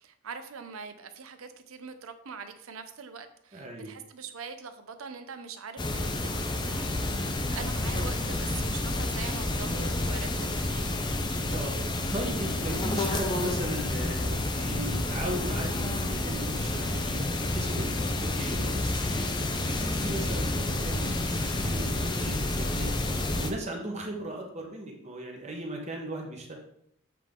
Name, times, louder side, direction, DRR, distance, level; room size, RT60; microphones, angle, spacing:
voice 1, 0.0-11.0, right 5 dB, 80° right, 9 dB, 0.6 m, -43 dB
voice 2, 3.5-3.9 11.5-11.7 12.1-19.3 19.7-22.9 23.3-26.5, right 1 dB, 30° right, 0 dB, 1.1 m, -37 dB
sound 1, 5.8-23.5, left 2 dB, 20° left, 0.5 m, -29 dB
7.5 x 3.7 x 3.7 m, 0.72 s
head